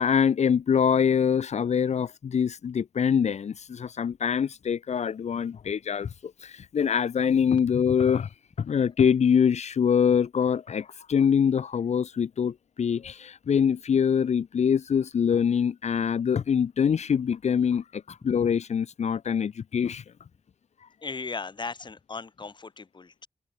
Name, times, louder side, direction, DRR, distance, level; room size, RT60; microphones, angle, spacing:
voice 1, 0.0-8.3 8.6-20.0 20.8-20.9, left 7 dB, 65° left, 0.9 m, -24 dB
voice 2, 21.0-23.3, left 4 dB, 35° left, 1.8 m, -37 dB
wide cardioid pair, 120°, 13 cm